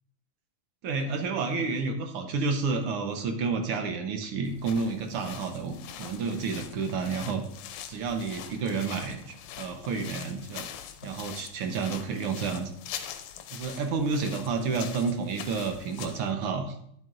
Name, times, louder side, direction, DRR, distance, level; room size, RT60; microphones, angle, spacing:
voice 1, 0.8-7.4 7.9-10.7 11.0-12.7 13.5-16.8, right 4 dB, 70° right, 5 dB, 1.5 m, -30 dB
sound 1, 4.5-16.3, left 10 dB, 85° left, 2.0 m, -43 dB
9.1 x 8.4 x 2.5 m, 0.68 s
omnidirectional pair, 3.3 m